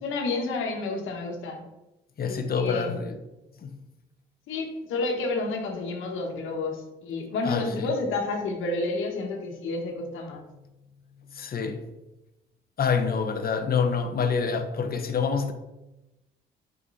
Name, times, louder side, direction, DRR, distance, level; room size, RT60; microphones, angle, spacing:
voice 1, 0.0-1.7 2.2-3.1 4.5-10.5, left 3 dB, 85° left, 3 dB, 1.6 m, -30 dB
voice 2, 2.2-3.2 3.6-3.7 7.4-7.9 11.3-11.9 12.8-15.5, left 5 dB, 50° left, 7 dB, 1.2 m, -27 dB
8.4 x 5.6 x 4.2 m, 1.0 s
cardioid pair, 90°, 20 cm